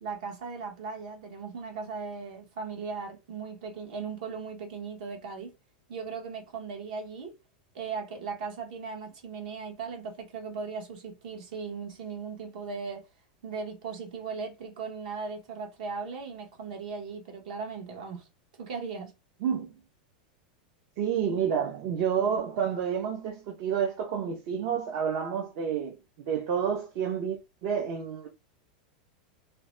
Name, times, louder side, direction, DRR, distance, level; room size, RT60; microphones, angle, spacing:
voice 1, 0.0-5.5 5.9-7.3 7.7-13.1 13.4-18.3 18.6-19.1, right 5 dB, 65° right, 1.1 m, -38 dB
voice 2, 19.4-19.8 21.0-28.3, right 7 dB, 45° right, 0.5 m, -29 dB
2.7 x 2.1 x 3.1 m
supercardioid pair, 165°, 5 cm